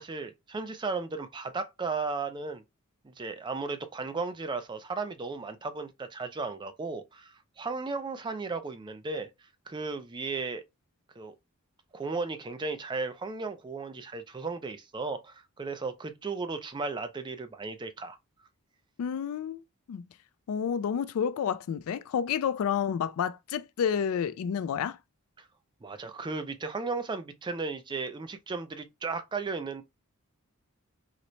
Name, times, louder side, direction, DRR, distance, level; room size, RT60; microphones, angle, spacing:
voice 1, 0.0-2.6 3.0-9.3 9.7-10.6 11.2-11.3 11.9-18.2 25.8-29.8, right 4 dB, 20° right, 0.4 m, -35 dB
voice 2, 19.0-19.6 19.9-20.0 20.5-25.0, left 7 dB, 65° left, 0.3 m, -30 dB
3.9 x 2.1 x 3.0 m
head